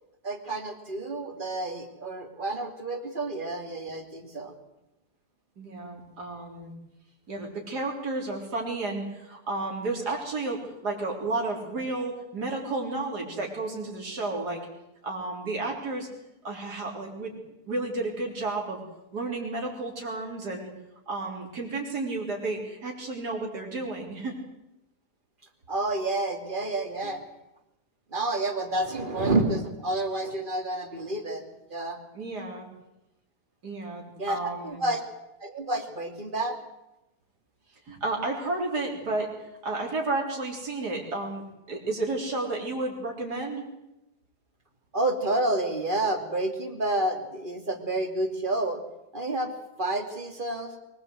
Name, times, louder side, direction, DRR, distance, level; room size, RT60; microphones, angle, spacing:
voice 1, 0.2-4.5 25.7-27.2 28.1-31.4 31.7-32.0 34.2-35.0 35.4-36.6 44.9-48.8 49.1-49.5 49.8-50.7, right 2 dB, 30° right, 5 dB, 2.9 m, -29 dB
voice 2, 5.6-6.7 7.3-14.6 15.0-16.1 16.4-17.3 17.7-18.8 19.1-20.7 21.1-24.3 32.1-32.6 33.6-34.8 37.9-41.4 41.7-43.6, right 2 dB, 75° right, -1 dB, 4.4 m, -32 dB
23.5 x 19.5 x 8.0 m, 0.92 s
omnidirectional pair, 1.7 m